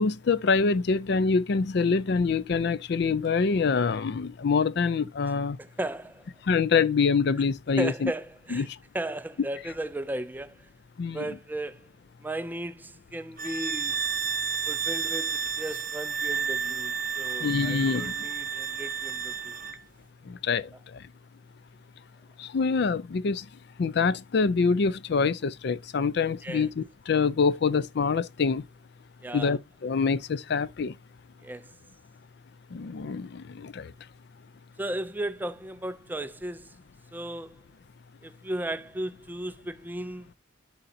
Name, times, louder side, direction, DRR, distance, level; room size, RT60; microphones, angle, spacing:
voice 1, 0.0-5.6 6.5-8.1 8.5-8.8 11.0-11.3 17.4-18.1 20.3-20.7 22.4-23.5 23.8-28.6 29.3-30.9 32.7-33.9, left 5 dB, 60° left, 0.4 m, -25 dB
voice 2, 5.6-6.3 7.8-8.7 8.9-10.7 11.1-11.9 12.2-14.0 14.7-19.6 26.4-26.7 29.2-29.5 31.4-31.7 34.8-36.7 37.1-37.6 38.2-40.3, right 1 dB, 10° right, 0.3 m, -35 dB
sound 1, 13.4-19.8, right 6 dB, 45° right, 0.9 m, -31 dB
11.0 x 3.9 x 2.7 m
head